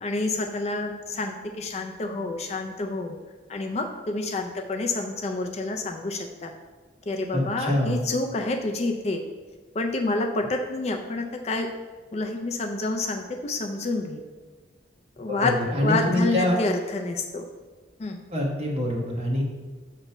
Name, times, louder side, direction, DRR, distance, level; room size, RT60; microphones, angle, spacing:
voice 1, 0.0-3.2 3.5-6.5 7.1-9.2 9.7-11.7 12.1-14.2 15.2-15.6 15.8-17.5 18.0-18.2, left 2 dB, 35° left, 4 dB, 0.4 m, -28 dB
voice 2, 7.3-8.0 15.3-16.6 18.3-19.5, left 1 dB, 35° right, -1 dB, 1.1 m, -25 dB
6.7 x 3.0 x 5.3 m, 1.3 s
head